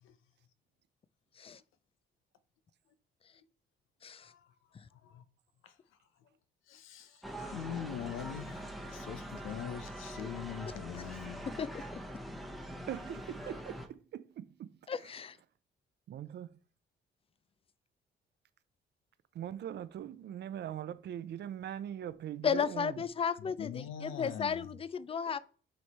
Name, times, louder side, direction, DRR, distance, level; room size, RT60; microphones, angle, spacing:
voice 1, 4.2-4.5 4.9-5.2 5.6-5.7 6.7-11.5 23.4-24.7, left 9 dB, 90° left, 0.8 m, -43 dB
sound 1, 7.2-13.9, right 1 dB, ahead, 0.9 m, -43 dB
voice 2, 12.9-15.1 16.1-16.6 19.3-23.0, right 10 dB, 60° right, 0.6 m, -41 dB
voice 3, 14.9-15.4 22.4-25.4, left 7 dB, 30° left, 0.4 m, -34 dB
7.8 x 3.2 x 4.2 m
cardioid pair, 90°, 20 cm